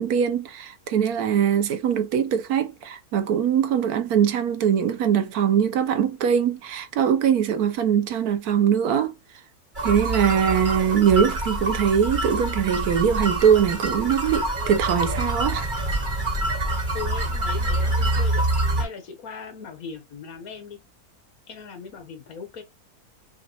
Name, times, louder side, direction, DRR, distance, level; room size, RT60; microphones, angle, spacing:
voice 1, 0.0-9.1 9.8-15.7, right 8 dB, 85° right, 1.2 m, -22 dB
sound 1, 9.8-18.9, right 1 dB, 35° right, 1.3 m, -26 dB
voice 2, 16.9-18.4 18.8-20.8 21.5-22.6, left 5 dB, 70° left, 1.5 m, -38 dB
5.8 x 2.5 x 2.8 m
omnidirectional pair, 1.6 m